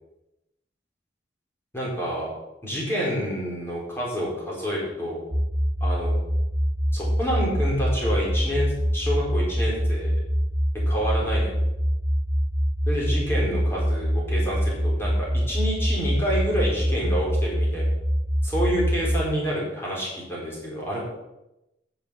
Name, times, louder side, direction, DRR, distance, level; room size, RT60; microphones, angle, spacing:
voice 1, 1.7-2.3 2.6-5.2 5.8-6.2 6.9-10.1 10.9-11.5 12.9-17.9 18.4-21.0, equal, 15° left, -5 dB, 4.5 m, -28 dB
sound 1, 5.3-19.3, equal, 30° right, 5.0 m, -24 dB
10.5 x 6.9 x 7.2 m, 0.93 s
head